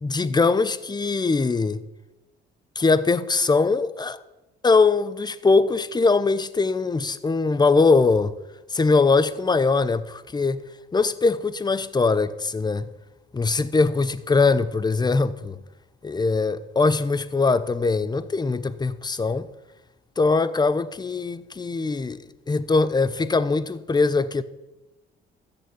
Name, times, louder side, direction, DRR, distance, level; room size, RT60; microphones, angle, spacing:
voice 1, 0.0-1.8 2.8-4.2 4.6-8.3 8.7-10.6 10.9-12.9 13.3-15.6 16.0-19.5 20.2-24.4, left 4 dB, 20° left, 0.7 m, -21 dB
13.5 x 7.0 x 8.3 m
cardioid pair, 90°, 20 cm